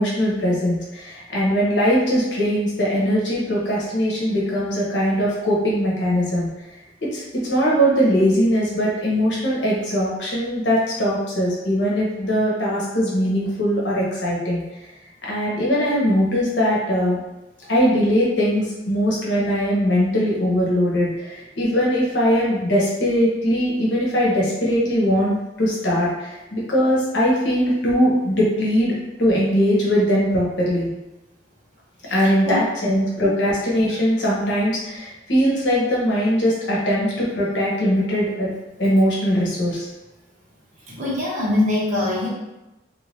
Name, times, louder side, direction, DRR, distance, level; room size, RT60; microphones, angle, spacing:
voice 1, 0.0-6.5 7.0-14.8 15.2-17.2 17.7-30.9 32.1-38.5 38.8-39.9, equal, 70° left, -5 dB, 1.2 m, -20 dB
voice 2, 32.1-32.6 40.9-42.3, left 2 dB, 40° right, -5 dB, 1.1 m, -23 dB
3.3 x 2.9 x 3.3 m, 1.0 s
head